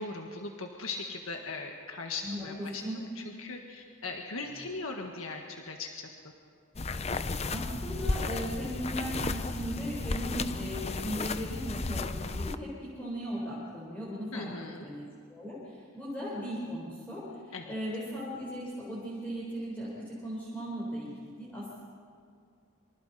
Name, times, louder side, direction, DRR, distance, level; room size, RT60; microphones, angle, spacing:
voice 1, 0.0-2.8 3.2-6.1 14.3-14.9 17.5-17.6, left 3 dB, 70° left, 2 dB, 1.7 m, -39 dB
voice 2, 2.2-3.0 7.5-14.5 14.8-15.0 15.3-21.8, equal, 5° left, -8 dB, 4.4 m, -37 dB
sound 1, 6.8-12.6, left 3 dB, 30° left, 0.6 m, -34 dB
27.0 x 25.0 x 4.3 m, 2.2 s
head